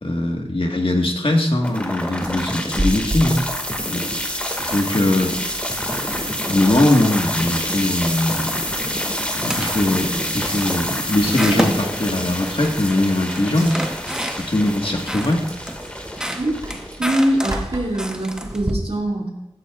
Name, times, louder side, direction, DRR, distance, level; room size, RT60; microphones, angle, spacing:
voice 1, 0.0-3.5 3.9-4.1 4.7-5.3 6.5-8.7 9.3-13.8 14.4-15.5, left 1 dB, 55° left, 3 dB, 1.6 m, -20 dB
sound 1, 1.6-17.6, equal, 10° left, 2.0 m, -27 dB
sound 2, 1.8-2.6 2.9-3.3 3.8-4.2 4.6-6.8 7.1-7.5 7.9-8.3 8.6-9.0 9.4-9.9 10.3-12.8 13.1-14.7 15.1-18.7, equal, 5° right, 1.0 m, -31 dB
Chewing mastication, 2.7-18.7, equal, 35° right, 3.3 m, -35 dB
voice 2, 17.0-19.3, right 1 dB, 65° right, -2 dB, 2.6 m, -22 dB
16.0 x 13.5 x 2.5 m, 0.97 s
wide cardioid pair, 45°, 11 cm